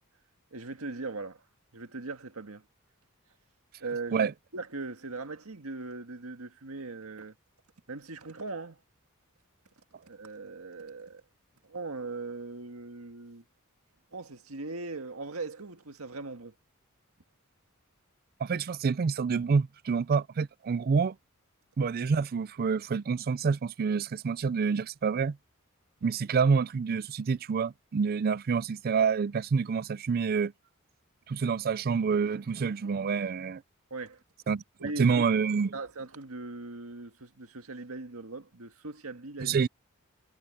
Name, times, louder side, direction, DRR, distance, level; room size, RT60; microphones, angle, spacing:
voice 1, 0.5-1.4 1.7-2.7 3.8-7.4 7.9-8.8 10.0-11.2 11.6-13.4 14.1-16.5 33.9-34.2 34.8-35.2 35.7-39.6, right 3 dB, 90° right, 1.8 m, -39 dB
voice 2, 18.4-21.2 21.8-25.4 26.0-30.5 31.3-33.6 34.5-34.6 35.0-35.7 39.4-39.7, right 5 dB, 45° right, 0.4 m, -27 dB
head